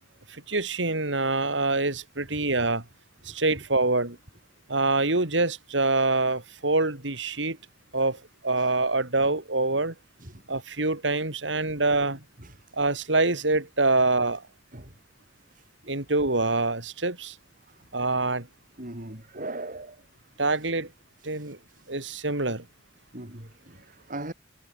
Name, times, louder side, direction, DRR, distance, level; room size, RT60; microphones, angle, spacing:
voice 1, 0.3-2.8 3.2-4.2 4.7-7.6 7.9-9.9 10.5-12.2 12.7-14.4 15.9-17.4 17.9-18.5 20.4-20.9 21.2-21.6 21.9-22.6, right 2 dB, 75° right, 4.1 m, -25 dB
voice 2, 18.8-20.0 23.1-24.3, right 2 dB, 45° right, 4.7 m, -38 dB
head